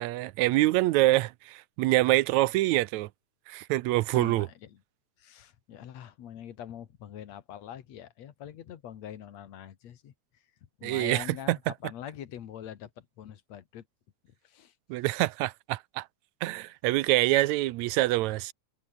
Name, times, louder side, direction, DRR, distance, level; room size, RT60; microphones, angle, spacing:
voice 1, 0.0-3.1 3.5-4.5 10.8-11.6 14.9-16.1 16.4-18.5, right 18 dB, 80° right, 1.9 m, -25 dB
voice 2, 4.1-4.8 5.2-13.9 14.4-15.0, left 10 dB, 65° left, 2.8 m, -44 dB
omnidirectional pair, 3.3 m